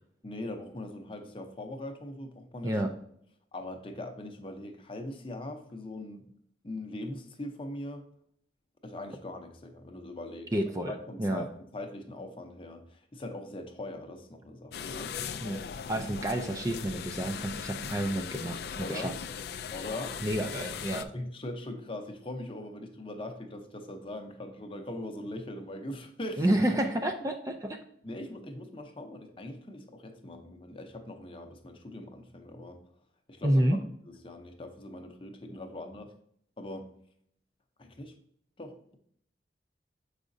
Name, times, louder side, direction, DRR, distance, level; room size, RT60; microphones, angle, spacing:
voice 1, 0.2-2.8 3.5-6.3 6.6-8.1 8.8-10.5 10.9-15.2 15.9-16.1 18.8-19.1 19.7-20.2 20.9-26.6 28.0-32.8 33.3-36.1 36.6-36.9 37.8-38.1 38.6-39.0, left 1 dB, 30° left, 5 dB, 0.7 m, -41 dB
voice 2, 10.5-10.9 11.2-11.5 15.4-19.1 20.2-21.0 26.4-27.8 33.4-33.8, right 1 dB, 20° right, 5 dB, 0.4 m, -29 dB
sound 1, 14.7-21.0, left 7 dB, 60° left, 0.3 m, -39 dB
7.4 x 4.9 x 2.6 m, 0.66 s
head